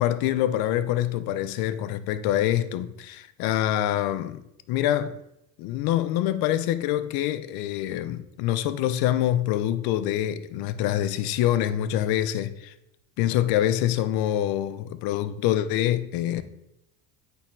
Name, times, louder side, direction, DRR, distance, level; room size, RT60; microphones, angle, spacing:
voice 1, 0.0-5.2 5.6-12.7 13.2-16.4, left 12 dB, 60° left, 0.6 m, -25 dB
8.8 x 3.6 x 3.2 m
supercardioid pair, 120°, 40 cm